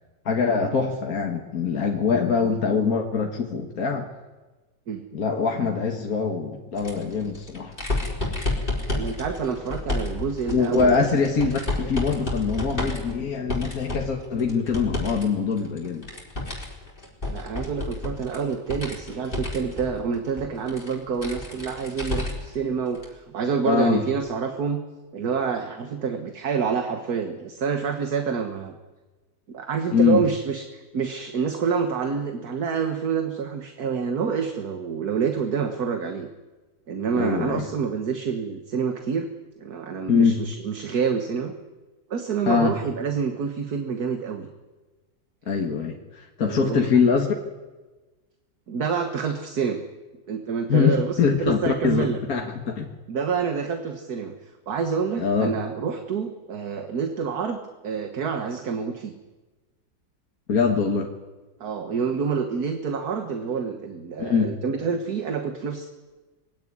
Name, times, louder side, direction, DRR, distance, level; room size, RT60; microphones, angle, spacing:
voice 1, 0.3-4.1 5.1-7.8 10.5-16.1 23.6-24.0 29.9-30.2 37.2-37.7 40.1-40.4 42.5-42.8 45.5-47.3 50.7-52.9 55.2-55.5 60.5-61.1 64.2-64.5, left 5 dB, 50° left, 1 dB, 2.0 m, -23 dB
sound 1, 6.7-15.2 15.5-22.5 22.9-23.1 24.3-24.4, left 2 dB, 25° left, 4.6 m, -31 dB
voice 2, 8.9-11.1 11.8-11.9 17.2-24.8 25.1-28.8 29.5-36.3 36.9-39.3 39.6-41.5 42.1-44.5 46.4-46.9 48.7-49.8 50.3-52.2 53.1-57.6 57.8-59.1 61.6-65.9, right 6 dB, 55° right, 6 dB, 1.8 m, -27 dB
22.5 x 17.0 x 9.8 m, 1.2 s
omnidirectional pair, 2.0 m